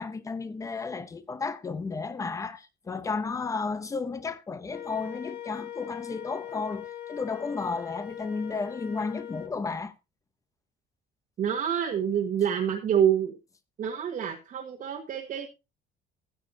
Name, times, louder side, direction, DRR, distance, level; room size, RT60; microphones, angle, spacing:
voice 1, 0.0-9.9, left 4 dB, 15° left, 0.8 m, -33 dB
Wind instrument woodwind instrument, 4.7-9.5, left 11 dB, 50° left, 1.2 m, -41 dB
voice 2, 11.4-13.4 13.8-15.5, right 9 dB, 40° right, 1.4 m, -27 dB
15.5 x 8.9 x 2.7 m
cardioid pair, 175°, 21 cm